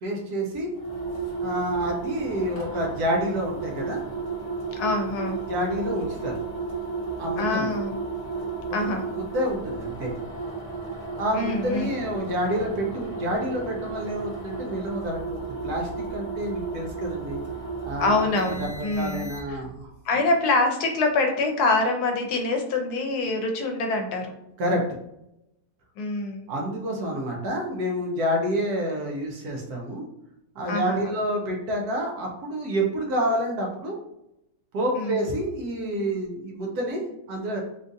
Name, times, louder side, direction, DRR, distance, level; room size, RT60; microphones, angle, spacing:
voice 1, 0.0-0.7 1.4-4.0 5.5-6.3 7.2-7.7 8.9-10.1 11.2-17.4 17.8-19.9 24.6-24.8 26.5-30.0 30.6-34.0 34.7-37.0 37.3-37.6, equal, 70° right, 0 dB, 1.2 m, -28 dB
sound 1, 0.7-19.7, right 4 dB, 50° left, 1.1 m, -33 dB
voice 2, 4.7-5.4 7.4-8.0 8.7-9.0 11.3-11.9 18.0-19.6 20.1-24.3 26.0-26.5 30.7-31.1 34.9-35.1, left 3 dB, 75° left, 4 dB, 1.1 m, -25 dB
3.8 x 2.4 x 2.5 m, 0.85 s
omnidirectional pair, 1.7 m